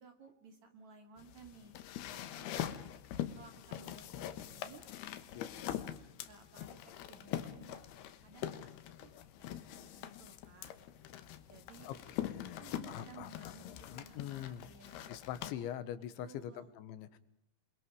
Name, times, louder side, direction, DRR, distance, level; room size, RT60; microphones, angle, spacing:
voice 1, 0.0-1.7 2.1-2.7 3.3-4.8 5.3-5.8 6.3-6.8 7.1-7.8 8.2-8.7 9.0-9.1 9.4-10.7 11.5-11.9 12.4-15.3 16.2-16.7, right 5 dB, 45° right, 6 dB, 3.2 m, -57 dB
sound 1, 1.2-15.5, left 11 dB, 70° left, 3.0 m, -43 dB
voice 2, 12.2-14.7 15.1-17.2, left 11 dB, 85° left, 13 dB, 3.6 m, -44 dB
28.0 x 24.0 x 4.9 m, 0.74 s
omnidirectional pair, 5.2 m